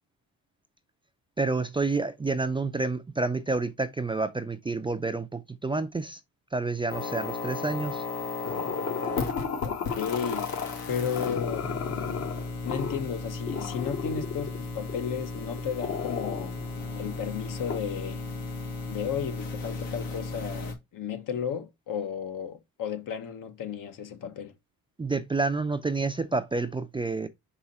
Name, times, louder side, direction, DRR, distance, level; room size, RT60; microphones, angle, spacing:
voice 1, 1.4-6.2 6.5-8.0 25.0-27.3, right 3 dB, 15° right, 0.4 m, -29 dB
sound 1, 6.9-20.7, left 3 dB, 80° left, 2.3 m, -35 dB
sound 2, 8.4-10.8 11.1-13.1 13.5-14.6 14.9-17.8, left 6 dB, 40° left, 1.0 m, -34 dB
voice 2, 9.6-10.6 10.9-11.7 12.6-16.5 17.0-18.2 18.9-24.5, left 7 dB, 65° left, 1.3 m, -34 dB
5.5 x 4.9 x 4.1 m
cardioid pair, 120°, 35 cm